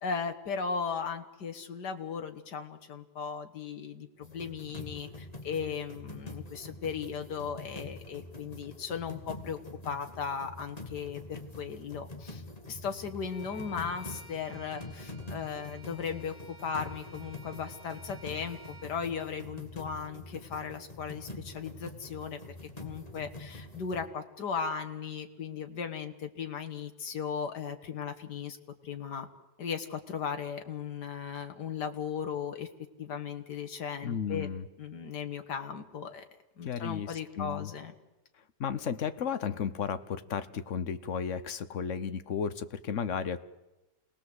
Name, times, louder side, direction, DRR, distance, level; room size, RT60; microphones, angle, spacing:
voice 1, 0.0-9.6 9.8-12.4 12.7-28.6 28.8-29.3 29.6-32.7 33.0-34.5 34.8-36.2 36.6-37.9, left 6 dB, 80° left, 7 dB, 2.2 m, -37 dB
sound 1, 4.2-24.1, left 2 dB, 25° left, 2.1 m, -45 dB
Bowed string instrument, 13.2-19.0, equal, 15° right, 3.5 m, -53 dB
voice 2, 34.0-34.7 36.6-37.7 38.6-43.4, left 7 dB, 50° left, 12 dB, 1.2 m, -34 dB
27.5 x 19.0 x 7.9 m, 1.0 s
omnidirectional pair, 1.8 m